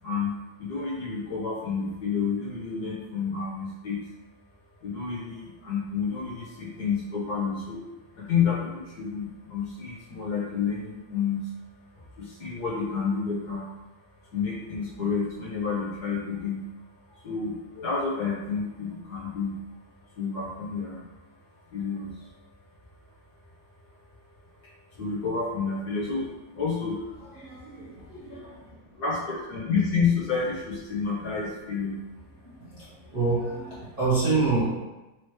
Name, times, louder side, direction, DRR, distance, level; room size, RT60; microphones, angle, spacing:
voice 1, 0.6-4.0 4.8-7.8 8.2-11.4 12.2-13.7 14.3-16.6 17.2-19.6 20.2-21.0 21.7-22.1 25.0-26.2 26.5-27.0 29.0-32.0, left 5 dB, 60° left, -6 dB, 1.5 m, -29 dB
voice 2, 27.4-28.6 32.4-34.7, right 3 dB, 40° right, -10 dB, 0.8 m, -28 dB
4.7 x 3.0 x 3.1 m, 1.1 s
omnidirectional pair, 2.1 m